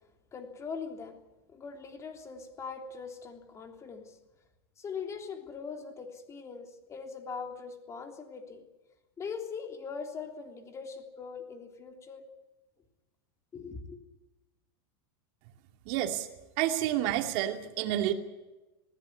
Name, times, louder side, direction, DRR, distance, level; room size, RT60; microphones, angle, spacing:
voice 1, 0.3-1.2 1.5-4.2 4.8-8.6 9.2-12.2 13.5-14.0, left 5 dB, 25° left, 4 dB, 3.3 m, -41 dB
voice 2, 15.9-16.3 16.6-18.1, right 12 dB, 55° right, 5 dB, 2.5 m, -29 dB
20.0 x 16.0 x 9.8 m, 1.1 s
supercardioid pair, 135°, 13 cm